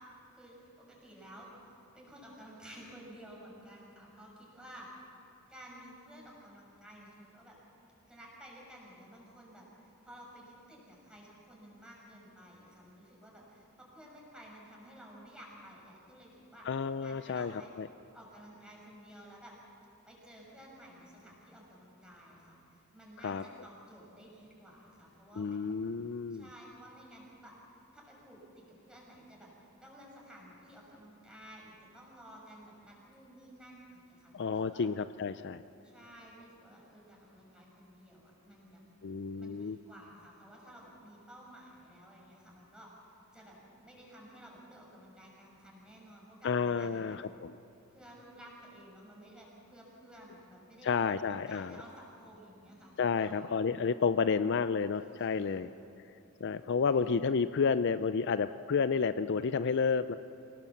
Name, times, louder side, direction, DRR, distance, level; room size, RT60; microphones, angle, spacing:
voice 1, 0.3-4.9 5.5-7.6 8.1-16.7 17.0-17.7 18.1-19.5 20.1-25.6 26.3-27.5 27.9-34.9 35.8-38.8 39.4-42.9 43.3-47.2 47.9-53.4 55.0-55.7 56.9-57.4, equal, 5° right, -3 dB, 5.9 m, -53 dB
voice 2, 16.7-17.5 17.8-17.9 23.2-23.4 25.4-26.4 34.3-35.6 39.0-39.8 46.4-47.5 50.8-51.8 53.0-55.7 56.4-60.2, left 5 dB, 50° left, 12 dB, 0.4 m, -30 dB
27.5 x 18.0 x 7.3 m, 2.7 s
head